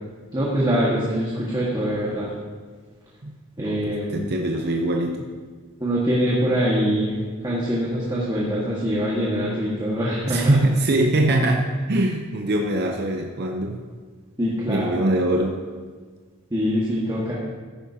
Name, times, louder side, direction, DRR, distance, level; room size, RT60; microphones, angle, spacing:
voice 1, 0.3-2.3 3.6-4.2 5.8-10.5 14.4-15.0 16.5-17.3, equal, 20° right, -6 dB, 1.6 m, -23 dB
voice 2, 3.2-5.3 10.3-13.8 14.7-15.6, right 1 dB, 50° right, 2 dB, 0.7 m, -23 dB
14.5 x 10.5 x 2.8 m, 1.5 s
head